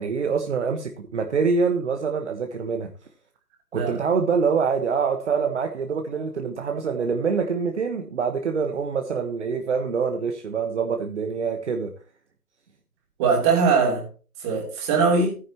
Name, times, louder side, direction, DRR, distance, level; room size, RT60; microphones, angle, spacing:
voice 1, 0.0-2.9 3.7-11.9, right 5 dB, 50° right, 5 dB, 1.3 m, -25 dB
voice 2, 13.2-14.0 14.4-15.4, right 4 dB, 20° right, -1 dB, 3.2 m, -21 dB
14.5 x 9.6 x 3.0 m, 0.35 s
hypercardioid pair, 160°, 45 cm